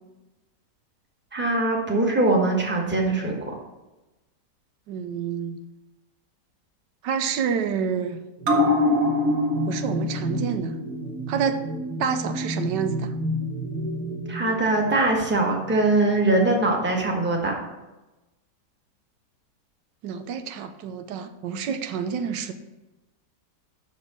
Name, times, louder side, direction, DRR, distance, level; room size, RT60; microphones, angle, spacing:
voice 1, 1.3-3.5 14.3-17.6, right 2 dB, 5° right, 0 dB, 1.1 m, -22 dB
voice 2, 4.9-5.6 7.0-8.2 9.7-10.7 11.3-11.6 12.0-13.1 20.0-22.5, right 7 dB, 90° right, 9 dB, 1.3 m, -28 dB
sound 1, 8.4-15.3 15.7-15.8, left 1 dB, 55° right, 1.5 m, -26 dB
6.1 x 5.5 x 6.6 m, 1.0 s
omnidirectional pair, 1.9 m